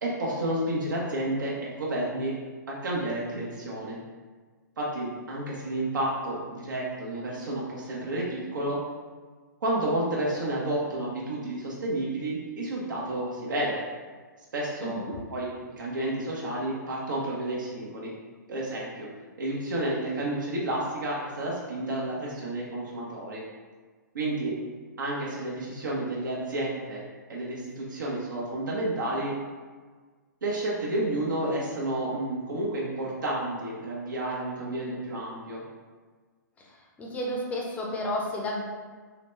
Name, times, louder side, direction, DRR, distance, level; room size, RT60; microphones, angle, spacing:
voice 1, 0.0-2.3 2.7-4.0 4.8-8.8 9.6-13.8 14.5-15.5 15.8-18.1 18.5-19.1 19.4-23.4 24.1-24.6 25.0-27.0 27.3-29.3 30.4-35.6, right 1 dB, 75° right, -4 dB, 0.8 m, -31 dB
voice 2, 14.8-15.2 36.6-36.7 37.0-38.6, left 1 dB, 15° left, -2 dB, 0.6 m, -31 dB
3.8 x 2.2 x 3.1 m, 1.5 s
hypercardioid pair, 130°, 10 cm